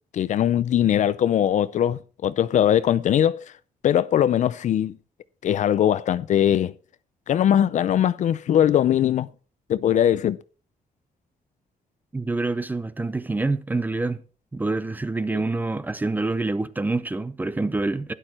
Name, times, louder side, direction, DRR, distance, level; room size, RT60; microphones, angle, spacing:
voice 1, 0.1-3.4 3.8-5.0 5.4-6.7 7.3-9.3 9.7-10.4 15.3-15.4, left 10 dB, 55° left, 0.5 m, -21 dB
voice 2, 12.1-14.2 14.5-18.1, right 3 dB, 10° right, 0.6 m, -26 dB
12.5 x 11.0 x 4.3 m
cardioid pair, 175°, 15 cm